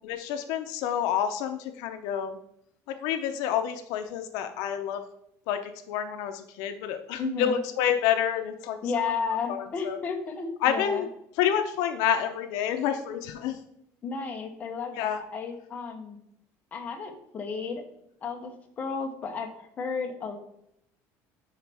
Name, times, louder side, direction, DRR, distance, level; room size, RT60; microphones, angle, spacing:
voice 1, 0.0-2.4 2.9-5.0 5.5-9.1 9.5-10.0 10.6-11.1 11.4-13.6 15.0-15.2, left 9 dB, 75° left, 8 dB, 0.6 m, -28 dB
voice 2, 7.2-7.6 8.8-11.0 14.0-16.2 16.7-17.8 18.2-20.4, left 5 dB, 25° left, 3 dB, 0.8 m, -33 dB
10.5 x 4.0 x 3.4 m, 0.76 s
cardioid pair, 175°, 7 cm